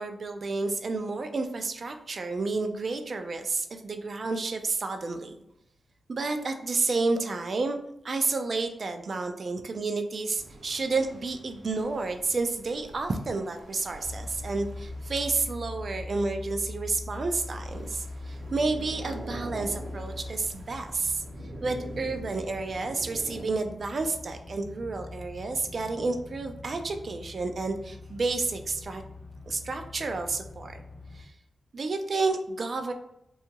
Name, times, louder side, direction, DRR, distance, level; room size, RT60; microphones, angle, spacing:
voice 1, 0.0-5.3 6.1-7.8 8.0-21.2 21.6-29.0 29.5-30.8 31.1-31.3 31.7-32.9, right 3 dB, 50° right, 6 dB, 0.3 m, -30 dB
sound 1, 10.3-23.5, right 1 dB, 75° right, 0.7 m, -46 dB
sound 2, 14.0-31.2, left 2 dB, 30° left, 0.6 m, -42 dB
2.7 x 2.3 x 2.7 m, 0.83 s
wide cardioid pair, 105°, 0 cm